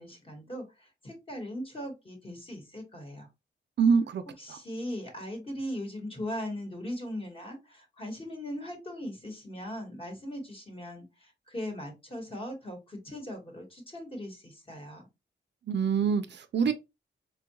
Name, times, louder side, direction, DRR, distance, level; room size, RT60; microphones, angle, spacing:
voice 1, 0.0-3.3 4.4-15.0, equal, 30° left, 1.1 m, -39 dB
voice 2, 3.8-4.2 4.5-4.6 15.7-16.7, right 6 dB, 65° right, 0.4 m, -25 dB
4.4 x 2.2 x 2.8 m
wide cardioid pair, 180°, 20 cm